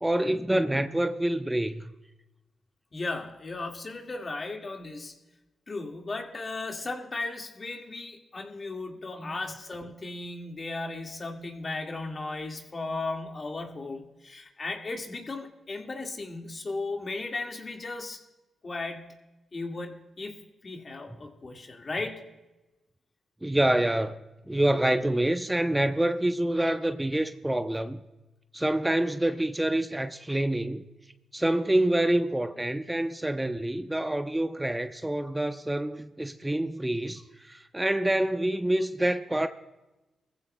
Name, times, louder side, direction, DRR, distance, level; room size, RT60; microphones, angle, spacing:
voice 1, 0.0-1.9 9.2-9.3 23.4-24.2 24.5-28.0 28.5-30.9 31.3-39.5, right 1 dB, 15° right, 0.7 m, -27 dB
voice 2, 2.9-5.1 5.7-18.2 18.6-19.1 19.5-20.4 20.6-22.2, left 3 dB, 45° left, 2.0 m, -36 dB
21.5 x 15.0 x 2.3 m
supercardioid pair, 50°, 0 cm